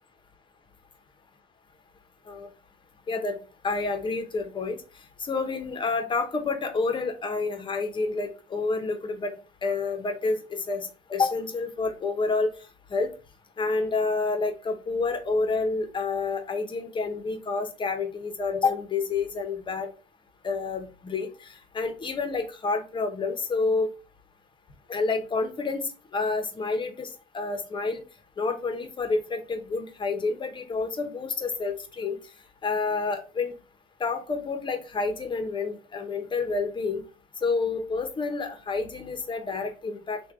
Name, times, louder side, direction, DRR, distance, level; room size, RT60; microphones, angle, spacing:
voice 1, 3.1-3.4 3.6-4.8 5.2-9.3 9.6-12.5 12.9-13.1 13.6-19.9 20.4-21.3 21.7-23.9 24.9-27.1 27.3-28.0 28.4-32.2 32.6-33.5 34.0-37.0 37.4-40.3, left 4 dB, 30° left, 6 dB, 0.7 m, -29 dB
3.2 x 2.2 x 3.5 m, 0.33 s
cardioid pair, 110°, 17 cm